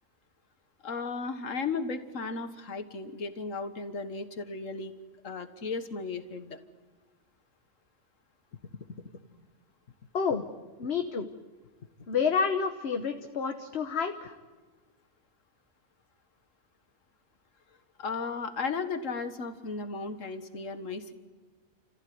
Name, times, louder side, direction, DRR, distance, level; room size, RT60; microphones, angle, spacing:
voice 1, 0.8-4.9 5.2-6.6 18.0-21.1, left 4 dB, 85° left, 9 dB, 1.9 m, -35 dB
voice 2, 10.8-11.3 12.1-14.4, left 6 dB, 55° left, 6 dB, 1.4 m, -29 dB
30.0 x 15.0 x 9.5 m, 1.3 s
omnidirectional pair, 1.3 m